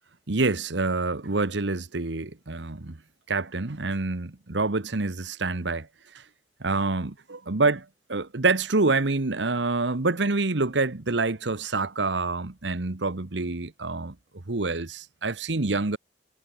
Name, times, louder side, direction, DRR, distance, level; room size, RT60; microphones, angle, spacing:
voice 1, 0.3-3.0 3.3-5.9 6.1-6.2 6.6-14.1 14.5-16.0, right 3 dB, 80° right, 1.3 m, -27 dB
head